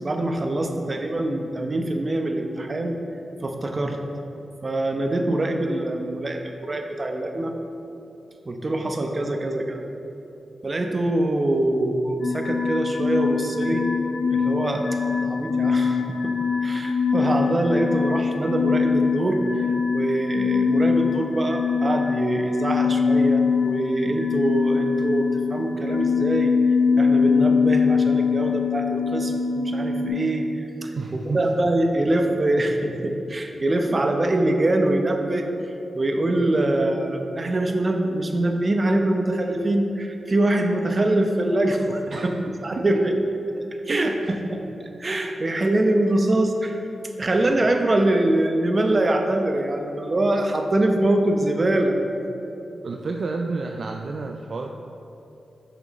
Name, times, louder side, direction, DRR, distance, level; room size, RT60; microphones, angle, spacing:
voice 1, 0.0-3.0 3.4-4.0 4.6-7.5 8.5-9.8 10.6-13.9 14.3-14.8 15.2-16.3 16.6-19.7 19.9-26.5 27.0-30.5 30.8-35.5 35.9-42.3 42.6-43.1 43.9-46.8 47.2-52.0, right 1 dB, 40° right, 4 dB, 0.8 m, -24 dB
sound 1, 12.2-30.1, left 5 dB, 80° left, 1.8 m, -23 dB
voice 2, 30.9-31.4 42.1-42.3 42.8-43.0 43.9-44.3 52.7-54.7, right 3 dB, 65° right, 3 dB, 0.4 m, -30 dB
9.3 x 6.3 x 3.2 m, 2.9 s
cardioid pair, 45°, 0 cm